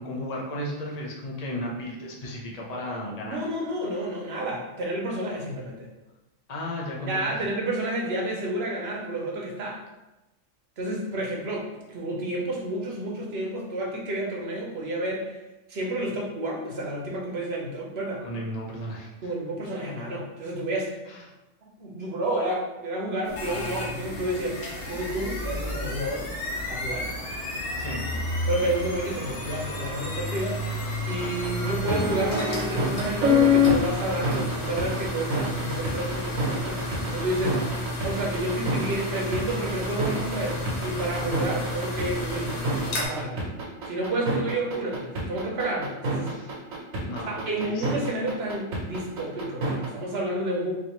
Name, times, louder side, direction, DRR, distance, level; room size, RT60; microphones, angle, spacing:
voice 1, 0.0-3.4 6.5-7.4 18.2-19.1 21.1-21.2 27.8-28.1 37.5-37.7 46.2-46.5 47.1-47.9, left 1 dB, 40° left, -2 dB, 0.7 m, -34 dB
voice 2, 3.3-5.9 7.1-9.8 10.8-15.4 15.7-18.3 19.2-21.0 21.8-26.3 26.7-27.1 28.5-30.6 31.1-36.8 37.1-37.6 38.0-43.4 43.8-46.4 47.3-50.7, right 1 dB, 55° right, -1 dB, 0.9 m, -30 dB
sound 1, 23.3-43.1, left 1 dB, 60° left, 1.1 m, -32 dB
sound 2, 31.2-49.9, left 2 dB, 90° right, 1.3 m, -26 dB
4.2 x 2.7 x 2.9 m, 1.0 s
omnidirectional pair, 1.4 m